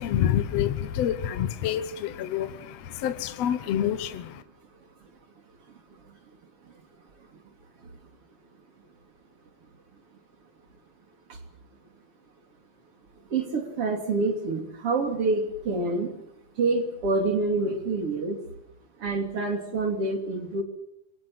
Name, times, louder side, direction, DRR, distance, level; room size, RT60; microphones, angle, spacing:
voice 1, 0.0-4.4, left 10 dB, 65° left, 10 dB, 1.9 m, -27 dB
voice 2, 13.3-16.1 16.6-18.4 19.0-20.6, right 3 dB, 45° right, 4 dB, 3.9 m, -27 dB
27.0 x 23.5 x 6.0 m, 0.77 s
omnidirectional pair, 3.8 m